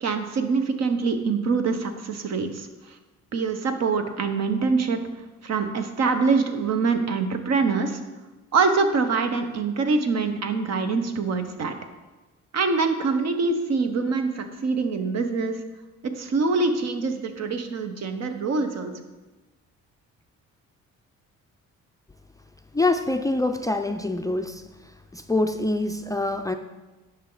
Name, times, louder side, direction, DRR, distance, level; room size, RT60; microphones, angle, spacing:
voice 1, 0.0-2.9 3.3-5.0 5.4-8.0 8.5-11.8 12.5-15.6 16.0-18.9, right 4 dB, 60° right, 7 dB, 1.0 m, -24 dB
voice 2, 22.7-24.6 25.1-26.6, left 2 dB, 10° left, 6 dB, 0.4 m, -25 dB
10.0 x 5.8 x 3.9 m, 1.2 s
cardioid pair, 90°, 30 cm